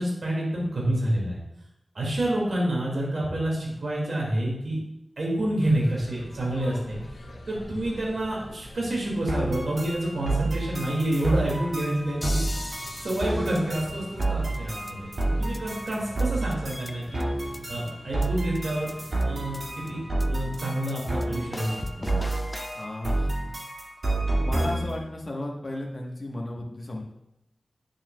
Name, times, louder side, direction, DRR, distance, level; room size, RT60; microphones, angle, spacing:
voice 1, 0.0-1.4 1.9-4.8 5.2-7.0 7.5-12.5 13.0-15.1 15.4-17.2 17.7-18.9 19.2-20.0 20.3-22.2, right 1 dB, 75° right, -4 dB, 2.1 m, -28 dB
sound 1, 5.6-20.1, left 1 dB, 80° left, 1.1 m, -46 dB
sound 2, 9.3-25.0, right 2 dB, 60° right, 1.9 m, -29 dB
sound 3, 12.2-14.3 14.5-14.6 14.9-15.0 15.2-15.3 15.5-15.6 15.9-16.0 16.2-16.3 16.5-17.2 17.5-17.6 17.9-18.0 18.2-18.3 18.5-18.6 18.9-19.0 19.2-19.3 19.5-19.6 19.9-20.0 20.2-20.3 20.5-20.6 20.9-21.0 21.2-21.3 21.5-22.9, left 1 dB, 25° left, 0.3 m, -39 dB
voice 2, 22.7-23.3 24.4-27.0, left 1 dB, 40° left, -2 dB, 1.1 m, -34 dB
9.3 x 7.0 x 2.3 m, 0.85 s
wide cardioid pair, 100°, 0 cm